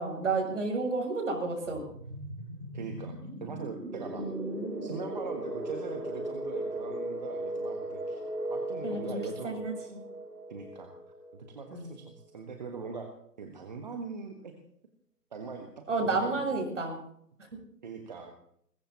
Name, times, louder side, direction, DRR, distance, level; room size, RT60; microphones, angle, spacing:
voice 1, 0.0-1.8 4.1-5.0 8.8-9.2 9.4-10.0 11.7-11.9 15.9-16.9, right 3 dB, 50° right, 3 dB, 7.2 m, -31 dB
sound 1, 1.6-12.1, right 1 dB, 85° right, 5.1 m, -38 dB
voice 2, 2.7-3.1 3.4-4.3 4.8-8.2 8.5-9.6 10.5-11.0 11.3-13.1 13.4-14.5 15.3-16.3 17.8-18.3, right 5 dB, 25° right, 4 dB, 1.4 m, -41 dB
21.5 x 20.0 x 3.0 m, 0.68 s
figure-of-eight pair, 145°, 49 cm